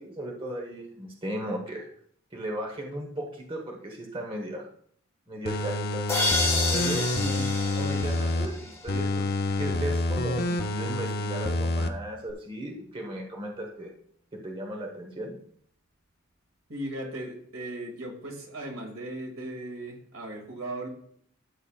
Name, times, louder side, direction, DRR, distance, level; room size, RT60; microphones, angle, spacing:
voice 1, 0.0-1.9 2.3-4.7 5.3-6.0 6.7-7.5 7.8-9.2 9.6-13.9 14.3-15.4, right 1 dB, 25° right, 0 dB, 1.2 m, -36 dB
sound 1, 5.5-8.5 8.9-11.9 12.3-12.4, left 2 dB, 50° left, 0.7 m, -28 dB
sound 2, 6.1-8.9, left 3 dB, 15° left, 1.5 m, -29 dB
voice 2, 16.7-20.9, right 1 dB, 75° right, 1 dB, 2.3 m, -37 dB
12.5 x 7.2 x 2.4 m, 0.63 s
head